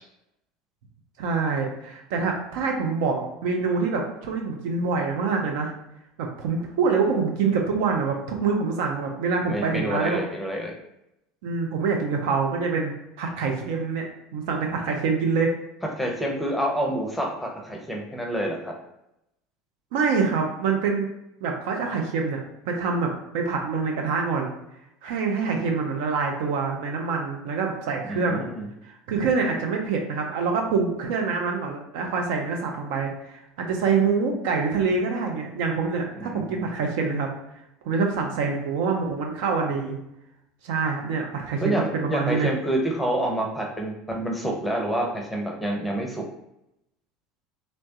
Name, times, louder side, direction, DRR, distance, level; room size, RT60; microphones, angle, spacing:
voice 1, 1.2-5.7 6.2-10.2 11.4-14.1 14.3-15.5 19.9-21.1 21.4-22.4 22.7-24.5 25.0-28.4 28.8-37.3 37.9-40.0 40.6-42.5, right 4 dB, 60° right, 1 dB, 0.4 m, -25 dB
voice 2, 9.4-10.7 16.0-18.7 28.0-28.7 36.1-36.7 41.6-46.2, right 1 dB, 5° left, 0 dB, 0.6 m, -28 dB
3.0 x 2.1 x 2.7 m, 0.84 s
figure-of-eight pair, 70°, 0 cm